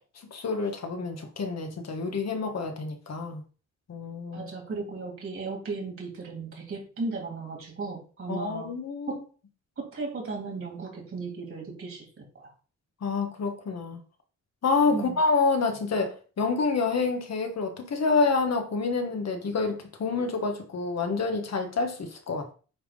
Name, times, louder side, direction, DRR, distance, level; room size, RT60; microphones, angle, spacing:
voice 1, 0.3-3.4 3.9-4.5 8.3-9.2 13.0-14.0 14.6-22.5, left 4 dB, 60° left, 1.5 m, -28 dB
voice 2, 4.3-8.7 9.1-9.2 9.8-12.5 14.9-15.2, right 3 dB, 45° right, 3.0 m, -36 dB
8.8 x 3.7 x 5.2 m
wide cardioid pair, 160°, 29 cm